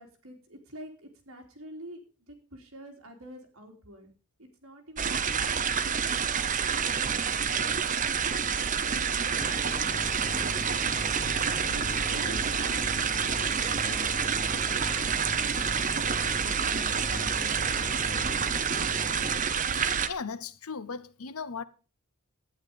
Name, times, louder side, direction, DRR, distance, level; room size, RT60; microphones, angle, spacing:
voice 1, 0.0-2.0 2.3-4.1 4.4-5.2 5.6-9.3 9.8-10.9 11.2-14.4 14.9-18.6, right 1 dB, 65° right, 3.6 m, -48 dB
sound 1, 5.0-20.1, right 7 dB, 35° right, 0.9 m, -28 dB
sound 2, 9.4-19.4, left 2 dB, 25° left, 0.9 m, -39 dB
voice 2, 19.7-21.6, left 5 dB, 80° left, 0.9 m, -37 dB
11.5 x 9.6 x 5.3 m
head